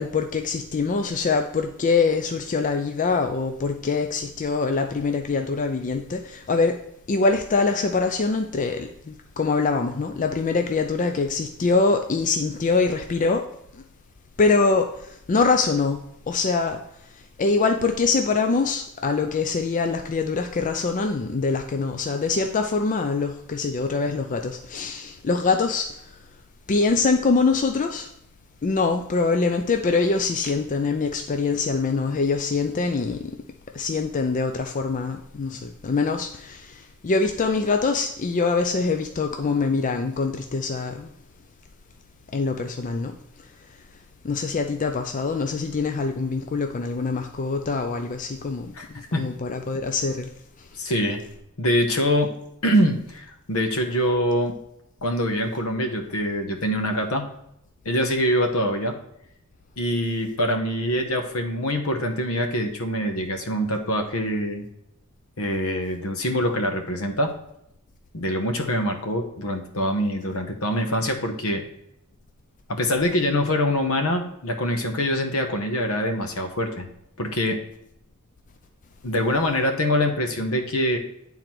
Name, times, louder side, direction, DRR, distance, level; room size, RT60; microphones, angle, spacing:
voice 1, 0.0-6.8 7.1-13.5 14.4-14.9 15.3-16.0 16.3-16.8 17.4-25.9 26.7-28.1 28.6-33.3 33.7-41.1 42.3-43.2 44.2-48.7 49.1-50.3, left 4 dB, 35° left, 0.4 m, -24 dB
voice 2, 48.7-49.2 50.7-51.2 51.6-52.3 52.6-54.5 55.0-57.2 57.8-58.9 59.8-64.7 65.4-67.3 68.1-71.6 72.7-76.9 77.2-77.6 79.0-81.0, equal, 70° left, 1.1 m, -24 dB
9.3 x 3.9 x 4.5 m
head